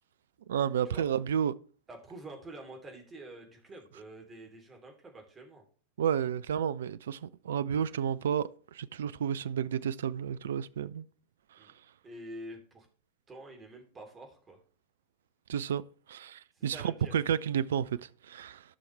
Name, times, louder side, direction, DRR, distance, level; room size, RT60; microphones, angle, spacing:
voice 1, 0.5-1.5 6.0-11.0 15.5-15.8 16.1-18.6, right 8 dB, 60° right, 0.4 m, -31 dB
voice 2, 1.9-5.6 11.6-11.7 12.0-12.9 13.3-14.6 16.5-17.1, right 1 dB, 20° right, 3.0 m, -47 dB
15.0 x 6.2 x 3.3 m
figure-of-eight pair, 90°, 0 cm